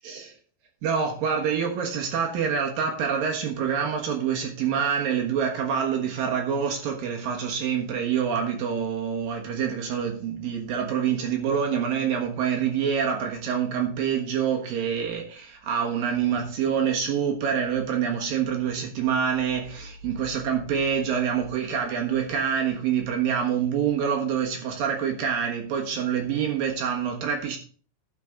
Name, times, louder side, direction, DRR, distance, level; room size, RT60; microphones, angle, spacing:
voice 1, 0.8-27.6, right 7 dB, 65° right, 2.3 m, -26 dB
12.0 x 5.2 x 5.0 m
omnidirectional pair, 5.8 m